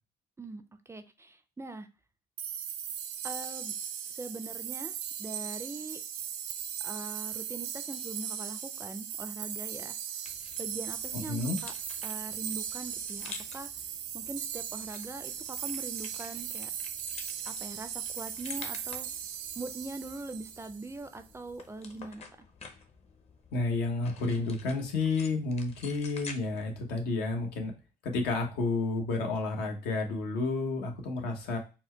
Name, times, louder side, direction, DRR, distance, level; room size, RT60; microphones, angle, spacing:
voice 1, 0.4-1.9 3.2-3.8 4.1-6.0 6.8-10.0 10.6-11.7 12.0-13.7 14.1-16.7 17.5-19.1 19.6-22.3, right 2 dB, 15° right, 9 dB, 0.4 m, -42 dB
sound 1, 2.4-21.1, right 9 dB, 85° right, 0.7 m, -38 dB
sound 2, 10.2-27.6, left 4 dB, 40° left, 0.7 m, -50 dB
voice 2, 11.1-11.6 23.5-27.7 28.0-31.6, left 3 dB, 85° left, 2 dB, 1.1 m, -31 dB
4.3 x 2.2 x 4.4 m, 0.31 s
cardioid pair, 110°, 17 cm